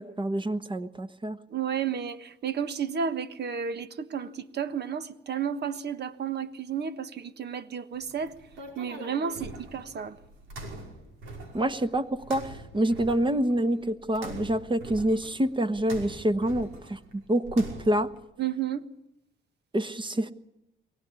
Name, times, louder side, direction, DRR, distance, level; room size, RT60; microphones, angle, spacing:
voice 1, 0.0-1.4 11.5-18.1 19.7-20.3, right 1 dB, 25° right, 1.3 m, -27 dB
voice 2, 1.5-8.3 8.8-10.2 18.4-18.8, right 7 dB, 55° right, 1.4 m, -32 dB
sound 1, 8.0-18.2, right 2 dB, 90° right, 5.6 m, -44 dB
23.5 x 17.5 x 9.8 m
cardioid pair, 90°, 20 cm